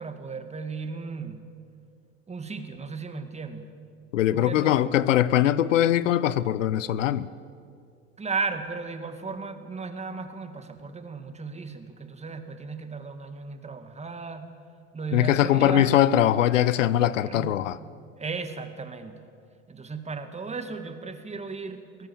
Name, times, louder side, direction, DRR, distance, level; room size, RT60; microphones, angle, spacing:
voice 1, 0.0-1.4 2.3-3.7 4.3-4.9 8.2-14.5 14.9-15.9 17.2-17.6 18.2-19.2 19.7-22.1, right 4 dB, 15° right, 8 dB, 2.1 m, -35 dB
voice 2, 4.1-7.3 15.1-17.8, left 12 dB, 90° left, 18 dB, 0.8 m, -22 dB
23.5 x 18.0 x 7.2 m, 2.3 s
hypercardioid pair, 90°, 37 cm